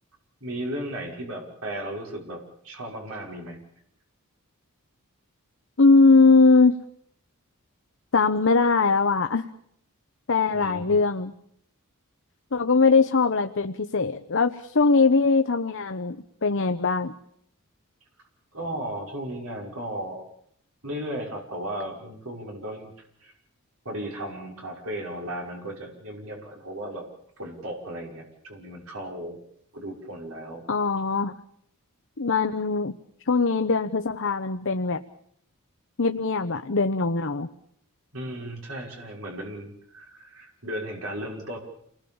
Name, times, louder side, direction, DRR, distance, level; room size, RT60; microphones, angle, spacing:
voice 1, 0.4-3.6 10.5-11.0 18.5-20.2 20.8-22.9 23.2-23.3 23.8-27.1 27.4-29.4 29.7-30.6 38.1-41.6, right 1 dB, 65° right, 0 dB, 5.8 m, -35 dB
voice 2, 5.8-6.8 8.1-9.4 10.3-11.3 12.5-17.1 30.7-31.3 32.2-33.0 33.3-35.0 36.0-37.5, left 4 dB, 60° left, 8 dB, 1.0 m, -21 dB
28.5 x 20.5 x 7.2 m, 0.70 s
head